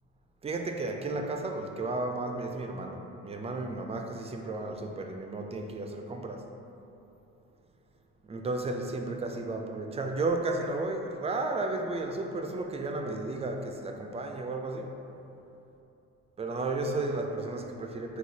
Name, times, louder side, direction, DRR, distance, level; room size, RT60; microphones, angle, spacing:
voice 1, 0.4-6.5 8.2-15.0 16.4-18.2, right 2 dB, 20° right, 3 dB, 0.4 m, -33 dB
5.6 x 2.7 x 2.7 m, 2.8 s
cardioid pair, 90°, 30 cm